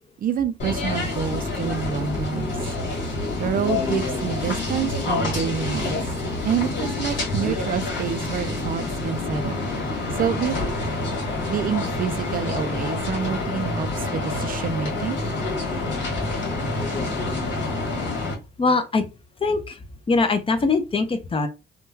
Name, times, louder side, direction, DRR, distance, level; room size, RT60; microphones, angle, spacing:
voice 1, 0.2-2.7 3.4-6.0 6.4-9.6 10.1-10.8 11.5-15.2, right 8 dB, 45° right, 0.4 m, -27 dB
sound 1, 0.6-18.3, left 2 dB, 70° left, 1.8 m, -27 dB
voice 2, 18.6-19.1 19.4-19.8 20.1-21.5, left 3 dB, 25° left, 0.6 m, -22 dB
3.6 x 2.2 x 2.7 m
cardioid pair, 90°, 20 cm